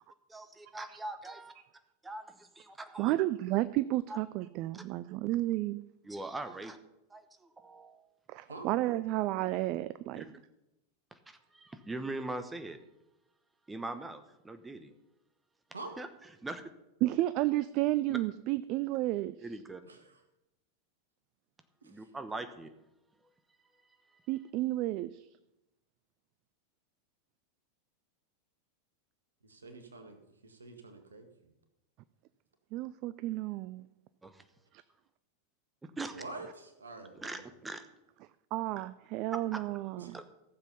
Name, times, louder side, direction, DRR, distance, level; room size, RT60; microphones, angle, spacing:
voice 1, 0.3-1.5 2.0-3.1 4.1-4.2 6.0-6.8 7.1-8.0 10.1-10.3 11.1-12.8 13.7-14.9 16.0-16.1 16.4-16.6 18.1-18.2 19.4-19.8 21.8-22.7 34.2-34.4 36.0-36.2 37.2-37.8 39.5-39.6 40.1-40.2, right 2 dB, 10° right, 9 dB, 1.1 m, -41 dB
voice 2, 3.0-5.8 8.3-10.3 17.0-19.4 24.3-25.3 32.7-33.9 38.5-40.1, right 16 dB, 45° right, 15 dB, 0.4 m, -32 dB
voice 3, 19.8-20.2 21.8-22.2 29.4-31.5 36.1-37.4 39.9-40.2, right 2 dB, 75° right, 6 dB, 1.9 m, -47 dB
15.0 x 7.3 x 5.6 m, 0.92 s
figure-of-eight pair, 90°, 0 cm